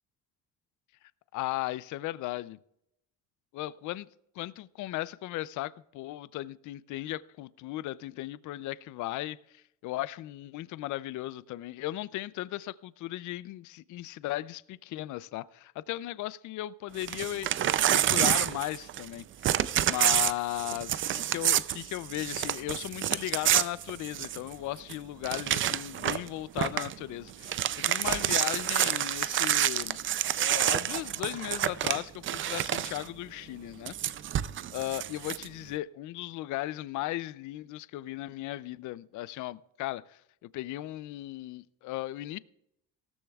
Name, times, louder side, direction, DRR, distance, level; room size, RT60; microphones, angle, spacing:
voice 1, 1.3-2.6 3.5-4.1 4.4-30.0 30.4-33.9 34.7-42.4, left 16 dB, 55° left, 0.5 m, -36 dB
Crumpling crinkling / Tearing, 17.0-19.1 19.4-24.5 24.9-25.0 25.2-26.3 26.6-26.9 27.3-33.0 33.9-35.4, right 11 dB, 35° right, 0.4 m, -28 dB
sound 1, 25.9-31.2, right 8 dB, 70° right, 1.5 m, -54 dB
17.5 x 13.5 x 2.3 m
cardioid pair, 135°, 35 cm